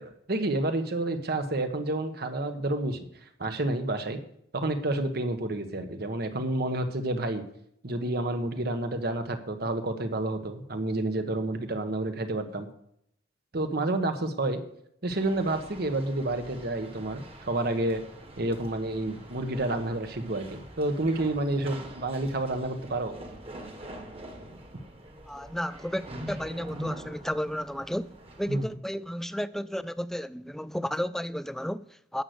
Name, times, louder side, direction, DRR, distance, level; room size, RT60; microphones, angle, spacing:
voice 1, 0.0-3.0 3.4-4.2 4.5-7.4 7.8-12.7 13.5-14.6 15.0-18.0 18.4-23.2 28.5-28.6, right 2 dB, 60° right, 1.3 m, -29 dB
sound 1, 15.1-28.7, right 1 dB, 35° right, 1.7 m, -44 dB
voice 2, 25.3-32.2, equal, ahead, 0.3 m, -33 dB
11.0 x 6.6 x 7.9 m
head